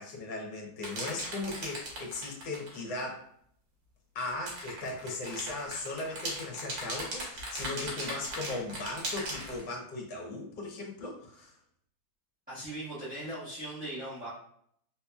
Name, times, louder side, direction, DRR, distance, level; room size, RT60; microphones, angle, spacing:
voice 1, 0.0-3.3 4.1-11.5, left 2 dB, 70° left, -1 dB, 1.4 m, -38 dB
sound 1, 0.8-2.8 4.3-9.6, right 1 dB, 80° right, 1.8 m, -38 dB
voice 2, 12.5-14.3, right 1 dB, 5° right, -14 dB, 0.9 m, -39 dB
3.6 x 2.9 x 2.3 m, 0.66 s
omnidirectional pair, 2.0 m